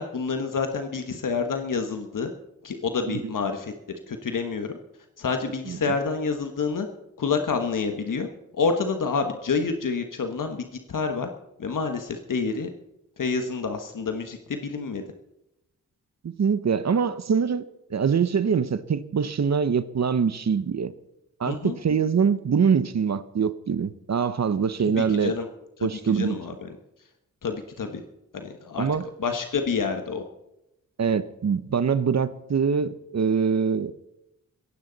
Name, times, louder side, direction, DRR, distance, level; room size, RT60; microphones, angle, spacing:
voice 1, 0.0-2.3 2.6-3.7 4.1-4.8 5.2-6.9 7.2-8.3 8.5-11.3 11.6-12.7 13.2-15.0 21.4-21.8 24.8-25.5 25.8-26.7 27.4-28.0 28.3-28.9 29.2-30.2, left 5 dB, 70° left, 5 dB, 1.4 m, -28 dB
voice 2, 16.2-17.6 17.9-20.9 21.4-25.3 25.8-26.4 28.8-29.0 31.0-33.9, right 6 dB, 50° right, 14 dB, 0.8 m, -24 dB
17.0 x 15.5 x 4.0 m, 0.88 s
wide cardioid pair, 85°, 33 cm